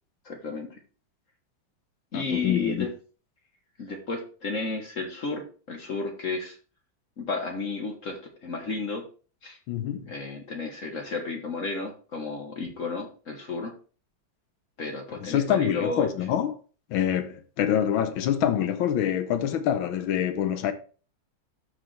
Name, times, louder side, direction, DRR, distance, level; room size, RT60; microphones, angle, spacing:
voice 1, 0.2-0.8 2.1-2.9 3.8-6.6 7.2-9.0 9.4-9.6 10.1-13.7 14.8-16.4, left 3 dB, 45° left, 1.5 m, -32 dB
voice 2, 2.1-2.9 9.7-10.1 15.2-16.6 16.9-20.7, left 10 dB, 90° left, 1.6 m, -26 dB
12.0 x 5.0 x 3.3 m
omnidirectional pair, 2.1 m